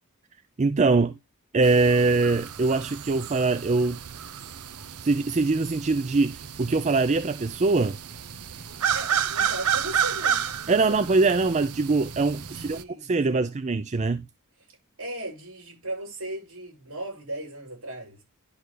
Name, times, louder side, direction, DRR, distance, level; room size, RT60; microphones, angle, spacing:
voice 1, 0.6-1.2 1.5-4.0 5.0-8.0 10.7-14.2, right 3 dB, 30° right, 0.4 m, -23 dB
sound 1, 1.6-12.8, right 8 dB, 90° right, 0.8 m, -31 dB
voice 2, 8.9-10.9 12.4-13.5 15.0-18.2, right 1 dB, 70° right, 6.7 m, -37 dB
11.0 x 6.6 x 3.3 m
head